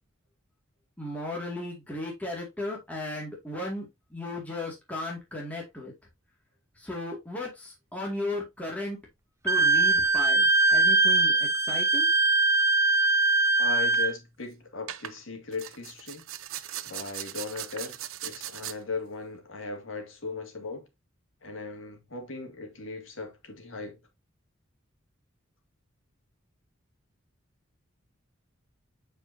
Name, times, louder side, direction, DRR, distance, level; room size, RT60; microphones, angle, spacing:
voice 1, 1.0-5.9 6.8-9.0 9.4-12.1, left 1 dB, 5° left, 2.2 m, -35 dB
Wind instrument woodwind instrument, 9.5-14.1, right 3 dB, 15° right, 0.3 m, -22 dB
voice 2, 13.6-16.2 16.8-20.9 21.4-24.0, left 4 dB, 70° left, 2.3 m, -38 dB
sound 1, 13.7-14.0 14.9-15.2 15.5-18.8, right 12 dB, 85° right, 0.7 m, -39 dB
8.5 x 4.9 x 2.7 m
head